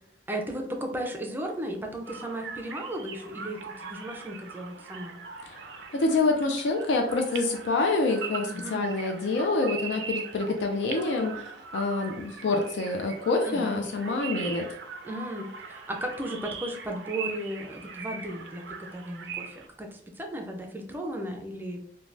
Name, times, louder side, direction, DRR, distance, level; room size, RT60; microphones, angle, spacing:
voice 1, 0.3-5.2 8.4-8.8 13.5-13.9 15.0-21.8, right 1 dB, 10° right, 2 dB, 0.4 m, -35 dB
sound 1, 2.1-19.7, right 5 dB, 80° right, 0.4 m, -41 dB
voice 2, 5.9-14.7, left 3 dB, 75° left, 4 dB, 0.4 m, -27 dB
3.2 x 2.2 x 2.5 m, 0.65 s
head